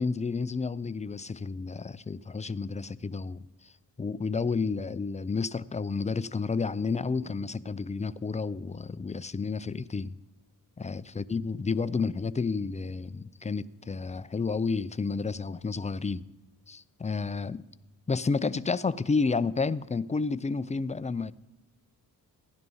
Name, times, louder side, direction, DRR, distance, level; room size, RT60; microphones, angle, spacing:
voice 1, 0.0-3.7 4.0-10.2 10.8-16.3 16.7-17.6 18.1-21.3, left 4 dB, 20° left, 0.4 m, -31 dB
16.0 x 11.0 x 5.5 m
cardioid pair, 90°, 38 cm